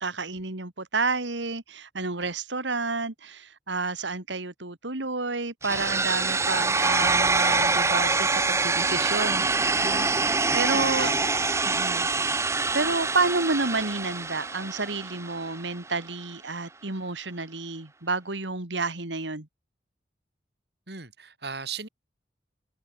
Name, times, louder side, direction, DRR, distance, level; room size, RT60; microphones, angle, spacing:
voice 1, 0.0-9.5 9.8-11.1 11.7-12.1 12.4-19.5, right 3 dB, 80° right, 2.5 m, -30 dB
sound 1, 5.6-15.6, right 3 dB, 15° right, 0.8 m, -25 dB
voice 2, 10.5-11.5 20.9-21.9, right 5 dB, 60° right, 6.7 m, -38 dB
head